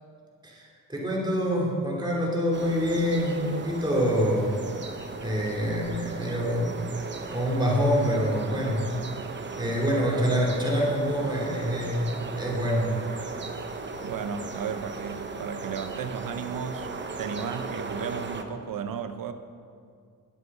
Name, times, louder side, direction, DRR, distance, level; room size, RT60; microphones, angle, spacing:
voice 1, 0.4-4.5 5.2-6.9 7.3-8.9 9.6-12.9, equal, 15° right, -4 dB, 2.9 m, -26 dB
sound 1, 2.5-18.4, right 3 dB, 35° right, 0.9 m, -37 dB
voice 2, 9.9-10.3 13.7-16.9 17.2-19.3, right 7 dB, 75° right, 9 dB, 0.9 m, -35 dB
11.0 x 8.1 x 6.1 m, 2.2 s
cardioid pair, 110°, 34 cm